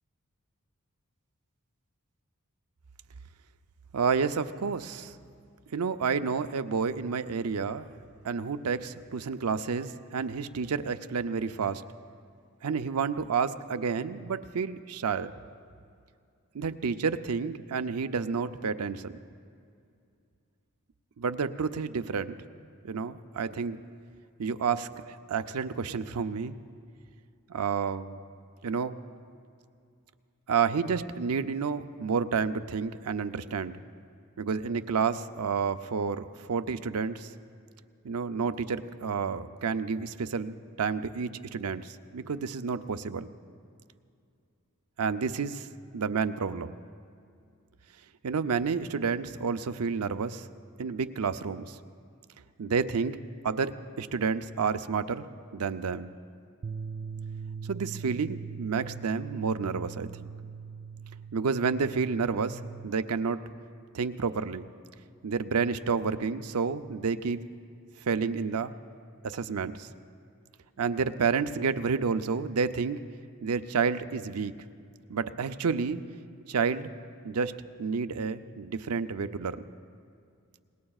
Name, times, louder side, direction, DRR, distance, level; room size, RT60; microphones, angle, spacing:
voice 1, 3.9-5.1 5.7-7.9 8.2-11.8 12.6-15.3 16.5-19.1 21.2-22.4 22.8-23.8 24.4-26.5 27.5-28.2 28.6-29.0 30.5-33.8 34.4-37.3 38.0-43.3 45.0-45.7 45.9-46.7 48.2-50.5 50.8-51.8 52.6-53.2 53.4-55.3 55.5-56.1 57.6-60.3 61.3-63.4 63.9-64.7 65.2-67.4 68.0-68.7 69.2-69.9 70.8-73.0 73.4-74.5 75.1-76.0 76.5-76.9 77.2-79.6, right 5 dB, 90° right, 10 dB, 0.6 m, -30 dB
sound 1, 56.6-62.9, right 6 dB, 35° right, 0.3 m, -41 dB
26.5 x 20.5 x 2.4 m, 2.4 s
head